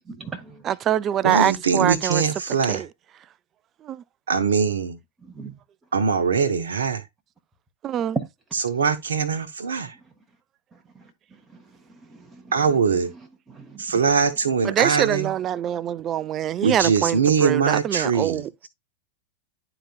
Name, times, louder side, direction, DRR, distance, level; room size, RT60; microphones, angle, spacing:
voice 1, 0.0-0.6 5.2-5.6 8.1-8.2 10.9-11.1 11.5-11.6 12.1-12.5 13.1-13.2 13.5-14.0, right 4 dB, 15° right, 1.0 m, -35 dB
voice 2, 0.6-2.2 2.7-2.9 3.8-4.0 7.8-8.2 14.6-18.5, right 11 dB, 30° right, 0.3 m, -24 dB
voice 3, 1.2-2.8 4.3-5.0 5.9-7.0 8.5-9.9 12.5-13.1 13.8-15.3 16.6-18.4, right 5 dB, 65° right, 0.7 m, -22 dB
11.5 x 3.9 x 2.3 m
figure-of-eight pair, 90°, 0 cm